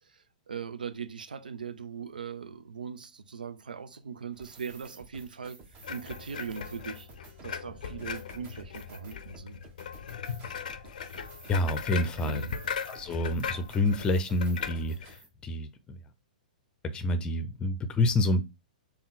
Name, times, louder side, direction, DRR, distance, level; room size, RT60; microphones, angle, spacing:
voice 1, 0.5-5.6 5.9-7.1 7.4-9.6 12.2-12.6, right 6 dB, 80° right, 0.4 m, -40 dB
sound 1, 4.3-15.3, right 4 dB, 30° right, 1.2 m, -51 dB
sound 2, 5.8-15.2, left 7 dB, 70° left, 0.5 m, -39 dB
voice 2, 11.5-12.5 12.9-15.2 15.4-16.0 16.8-18.4, left 2 dB, 20° left, 0.6 m, -28 dB
3.6 x 2.3 x 4.0 m
hypercardioid pair, 115°, 5 cm